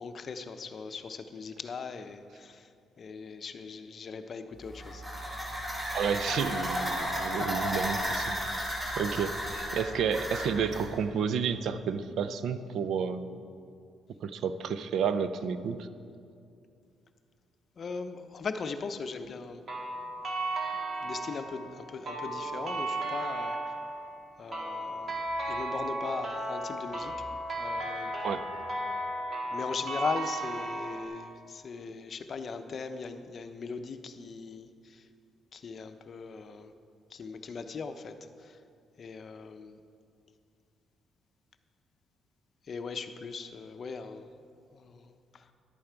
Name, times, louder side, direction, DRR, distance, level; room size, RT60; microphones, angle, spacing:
voice 1, 0.0-2.7 3.0-5.0 17.8-19.6 21.0-23.8 24.4-27.2 27.6-28.1 29.5-35.1 35.5-36.7 37.1-38.6 39.0-39.8 42.6-44.4 44.7-45.5, left 5 dB, 50° left, 9 dB, 0.6 m, -39 dB
sound 1, 4.6-10.9, equal, 20° right, 2.4 m, -33 dB
voice 2, 5.9-8.4 9.0-13.3 14.2-15.9 28.2-28.5, right 6 dB, 70° right, 12 dB, 0.5 m, -31 dB
sound 2, 19.7-31.1, right 1 dB, 45° right, 1.8 m, -35 dB
11.0 x 8.6 x 4.6 m, 2.4 s
cardioid pair, 90°, 0 cm